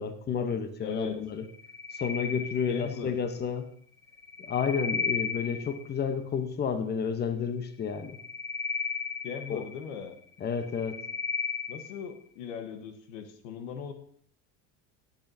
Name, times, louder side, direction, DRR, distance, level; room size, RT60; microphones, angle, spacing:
voice 1, 0.0-1.4 2.0-3.7 4.5-8.1 9.5-9.6 10.4-10.9, left 6 dB, 25° left, 9 dB, 0.9 m, -31 dB
voice 2, 0.8-1.2 2.7-3.1 9.2-10.2 11.7-13.9, left 7 dB, 85° left, 8 dB, 1.2 m, -39 dB
sound 1, 1.5-3.2 4.1-6.0 7.9-10.0 10.5-12.1, left 5 dB, 5° left, 0.5 m, -35 dB
12.0 x 8.3 x 2.7 m, 0.62 s
supercardioid pair, 105°, 36 cm